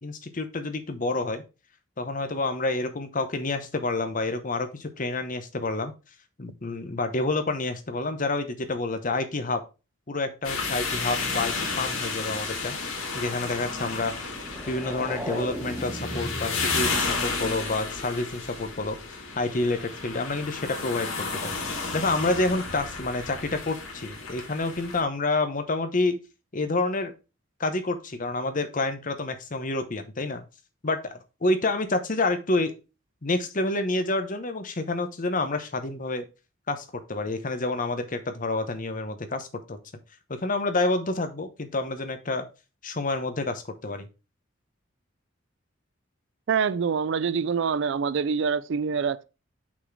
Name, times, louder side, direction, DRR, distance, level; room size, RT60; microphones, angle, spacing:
voice 1, 0.0-1.4 2.0-5.9 6.4-9.6 10.1-12.8 13.1-14.1 14.7-26.2 26.5-27.1 27.6-30.4 30.8-32.7 33.2-36.2 36.7-39.8 40.3-42.5 42.8-44.1, left 2 dB, 40° left, 0.9 m, -28 dB
sound 1, 10.4-25.0, left 4 dB, 90° left, 2.0 m, -32 dB
sound 2, 13.8-19.0, right 1 dB, 5° right, 1.5 m, -39 dB
voice 2, 46.5-49.2, right 6 dB, 60° right, 0.4 m, -25 dB
6.0 x 4.2 x 4.6 m
head